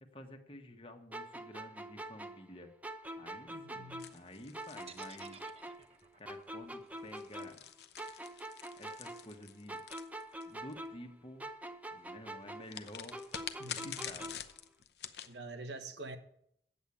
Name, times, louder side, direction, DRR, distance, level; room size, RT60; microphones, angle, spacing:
voice 1, 0.0-2.7 3.2-5.4 6.2-7.6 8.8-9.8 10.5-11.5 11.9-13.4 13.7-14.3, left 1 dB, 30° left, 1.2 m, -51 dB
sound 1, 1.1-4.3 4.5-7.7 8.0-11.1 11.4-14.5, right 1 dB, 10° right, 0.6 m, -45 dB
voice 2, 3.5-4.1 13.6-14.1 15.3-16.2, right 2 dB, 85° right, 1.2 m, -46 dB
sound 2, 4.0-6.0 7.0-10.7 12.7-15.3, left 9 dB, 70° left, 0.7 m, -46 dB
sound 3, 4.9-8.9, right 6 dB, 35° right, 0.9 m, -56 dB
8.1 x 8.1 x 8.5 m
head